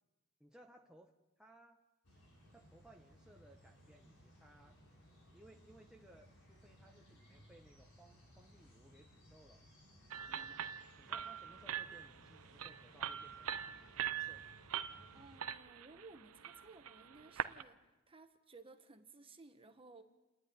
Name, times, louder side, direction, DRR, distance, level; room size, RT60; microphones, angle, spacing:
voice 1, 0.4-1.8 2.5-4.8 5.3-9.7 11.0-14.5, right 1 dB, 5° right, 1 dB, 1.0 m, -63 dB
sound 1, 2.0-15.4, equal, 70° left, 6.2 m, -63 dB
sound 2, 10.1-17.6, right 9 dB, 70° right, 0.7 m, -43 dB
voice 2, 15.1-20.0, right 3 dB, 25° right, 7 dB, 1.3 m, -58 dB
29.5 x 11.0 x 9.4 m, 1.1 s
head